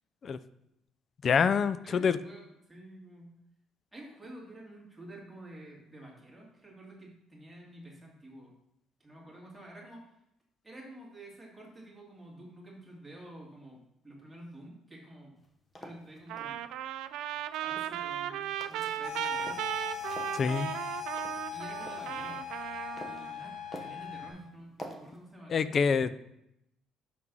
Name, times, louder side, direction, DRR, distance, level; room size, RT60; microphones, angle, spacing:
voice 1, 1.2-2.2 20.3-20.7 25.5-26.2, left 6 dB, 35° left, 14 dB, 0.4 m, -26 dB
voice 2, 1.8-3.3 3.9-8.5 9.0-10.2 10.6-13.8 14.0-15.3 15.8-16.6 17.6-19.6 21.5-22.5 23.0-25.8, right 1 dB, 5° right, -4 dB, 2.2 m, -49 dB
sound 1, 15.4-16.5 17.4-18.2 18.6-19.7 20.1-22.0 22.5-23.3 23.7-24.1 24.8-25.2, equal, 15° left, 1.0 m, -46 dB
Trumpet, 16.3-23.3, right 11 dB, 70° right, 0.3 m, -36 dB
sound 2, 19.0-24.3, left 9 dB, 60° left, 1.7 m, -40 dB
6.2 x 6.0 x 5.4 m, 0.81 s
cardioid pair, 145°, 0 cm